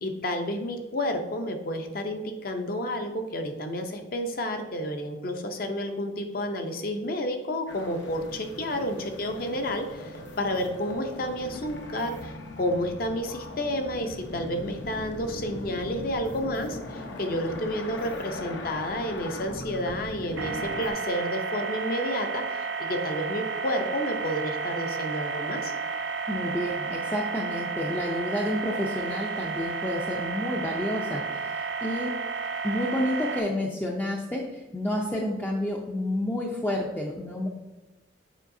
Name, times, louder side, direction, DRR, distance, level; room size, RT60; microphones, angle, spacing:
voice 1, 0.0-25.7, equal, 50° left, 5 dB, 0.7 m, -30 dB
sound 1, 7.7-20.9, left 1 dB, 75° left, 0.9 m, -40 dB
sound 2, 20.4-33.4, right 4 dB, 70° right, 0.6 m, -32 dB
voice 2, 26.3-32.1 32.6-37.5, left 1 dB, 10° left, -1 dB, 0.5 m, -30 dB
7.2 x 4.8 x 2.7 m, 1.1 s
head